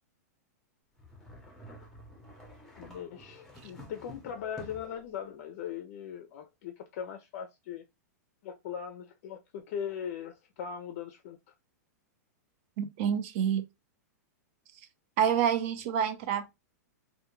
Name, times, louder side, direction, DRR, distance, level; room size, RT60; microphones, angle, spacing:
sound 1, 1.0-5.0, left 1 dB, 5° left, 0.6 m, -50 dB
voice 1, 2.7-7.8 8.4-11.4, left 8 dB, 50° left, 0.4 m, -39 dB
voice 2, 12.8-13.6 15.2-16.5, right 8 dB, 45° right, 0.5 m, -28 dB
2.2 x 2.2 x 3.0 m
hypercardioid pair, 145°, 9 cm